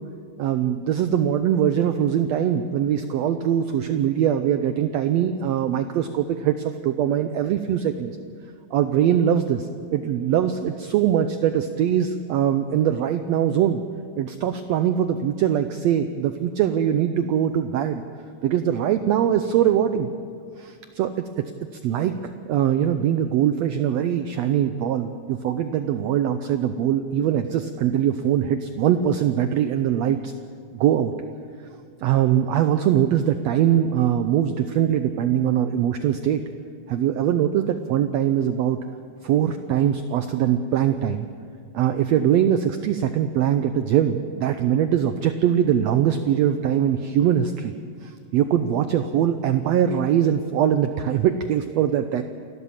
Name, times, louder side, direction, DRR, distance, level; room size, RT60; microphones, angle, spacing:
voice 1, 0.4-8.1 8.7-13.8 14.2-18.0 18.4-20.1 20.6-21.1 21.8-22.2 22.5-30.3 30.7-31.1 32.0-36.4 36.9-38.8 39.2-41.3 41.7-47.7 48.0-52.2, right 10 dB, 85° right, 9 dB, 1.5 m, -22 dB
28.5 x 12.5 x 7.3 m, 2.2 s
omnidirectional pair, 3.8 m